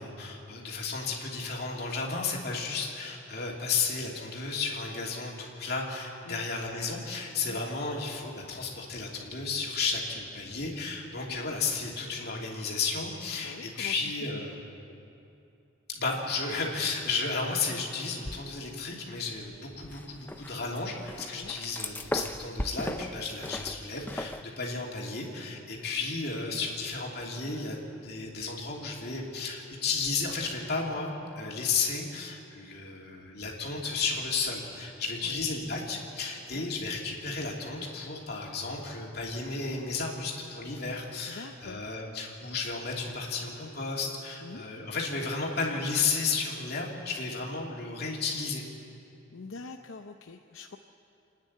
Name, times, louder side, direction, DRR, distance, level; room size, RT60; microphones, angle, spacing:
voice 1, 0.0-14.6 15.9-27.8 28.0-48.6, left 4 dB, 50° left, -2 dB, 3.0 m, -33 dB
voice 2, 13.4-14.4 21.3-21.6 24.7-24.8 35.2-35.4 36.5-36.7 41.3-41.9 44.4-44.7 49.3-50.8, left 3 dB, 80° left, 5 dB, 0.7 m, -45 dB
sound 1, 18.3-18.9 19.3-24.4, left 1 dB, 10° left, 0.6 m, -38 dB
27.0 x 9.7 x 9.9 m, 2.7 s
head